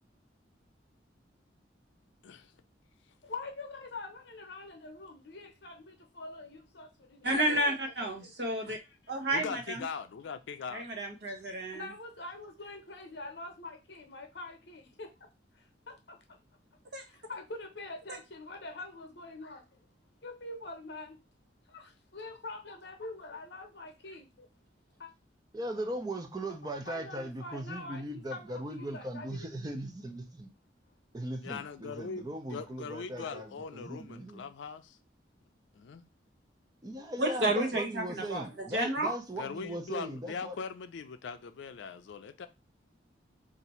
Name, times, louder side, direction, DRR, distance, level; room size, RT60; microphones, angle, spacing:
voice 1, 3.2-7.9 8.2-8.3 8.8-9.0 11.7-15.1 15.9-16.4 17.1-19.8 20.2-21.2 21.7-24.5 25.0-25.1 26.8-29.5 33.1-33.3, left 2 dB, 60° left, 0.8 m, -45 dB
voice 2, 7.2-8.8 9.1-9.8 10.7-11.8 16.9-17.0 37.2-39.1, right 1 dB, 60° right, 0.9 m, -31 dB
voice 3, 9.3-10.9 31.4-35.0 35.7-36.0 39.3-42.5, left 5 dB, 80° left, 0.4 m, -41 dB
voice 4, 25.5-30.5 31.1-34.5 36.8-40.6, right 1 dB, 20° right, 0.5 m, -39 dB
2.7 x 2.5 x 4.2 m
head